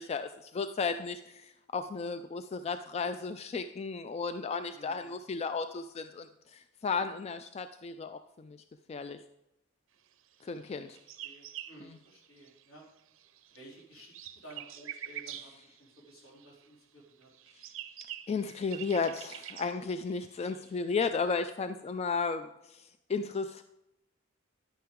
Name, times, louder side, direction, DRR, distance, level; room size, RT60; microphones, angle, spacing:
voice 1, 0.0-8.6 8.9-9.2 10.4-11.0 18.3-23.6, left 4 dB, 30° left, 10 dB, 0.3 m, -34 dB
voice 2, 4.7-5.1 10.5-12.8 13.5-17.3, right 1 dB, 75° left, -3 dB, 3.2 m, -54 dB
sound 1, 10.6-12.8 13.1-16.7 17.2-21.5, right 11 dB, 70° right, 0.6 m, -46 dB
11.0 x 8.7 x 3.6 m, 0.87 s
head